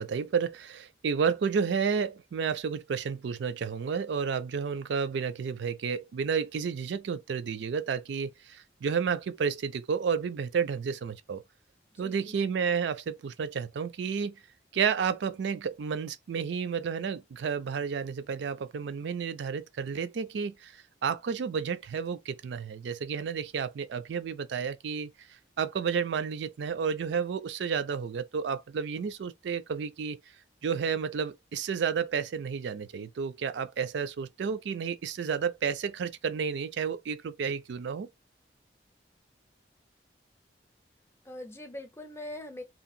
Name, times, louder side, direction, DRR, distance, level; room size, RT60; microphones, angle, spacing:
voice 1, 0.0-11.4 12.0-14.3 14.7-25.1 25.6-30.2 30.6-38.1, right 6 dB, 80° right, 0.4 m, -31 dB
voice 2, 11.9-12.4 41.2-42.6, left 1 dB, 15° left, 0.5 m, -42 dB
2.8 x 2.4 x 2.6 m
head